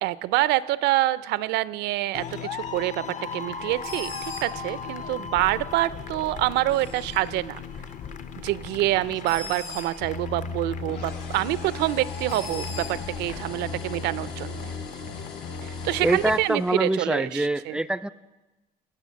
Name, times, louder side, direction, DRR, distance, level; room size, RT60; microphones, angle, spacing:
voice 1, 0.0-3.0 3.3-4.1 4.4-7.6 8.4-14.7 15.6-17.8, right 16 dB, 85° right, 18 dB, 0.5 m, -26 dB
sound 1, 2.1-16.4, left 5 dB, 45° left, 0.7 m, -37 dB
Bird, 3.6-13.4, left 4 dB, 65° left, 5.4 m, -42 dB
sound 2, 10.9-17.1, left 4 dB, 85° left, 1.7 m, -41 dB
voice 2, 16.0-18.1, right 1 dB, 5° right, 16 dB, 0.3 m, -25 dB
17.0 x 6.5 x 6.3 m, 1.1 s
cardioid pair, 110°, 17 cm